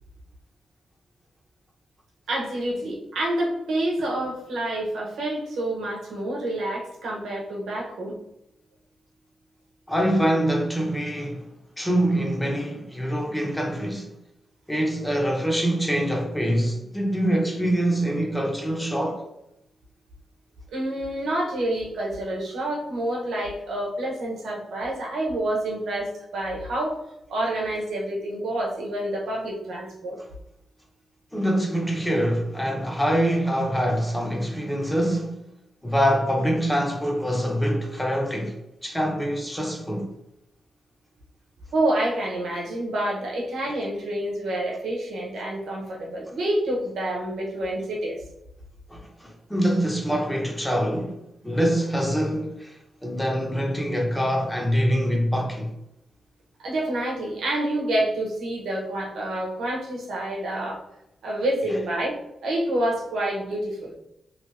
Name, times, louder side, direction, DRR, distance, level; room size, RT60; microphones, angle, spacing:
voice 1, 2.3-8.1 20.7-27.0 27.3-30.2 41.7-48.2 56.6-60.8 61.2-63.9, right 1 dB, 85° right, 0.9 m, -28 dB
voice 2, 9.9-11.5 11.8-14.1 14.7-19.2 31.3-35.4 35.8-38.6 38.8-40.1 48.9-51.2 51.4-55.7, equal, 10° left, 0.9 m, -24 dB
3.0 x 2.6 x 3.2 m
cardioid pair, 75°, 0 cm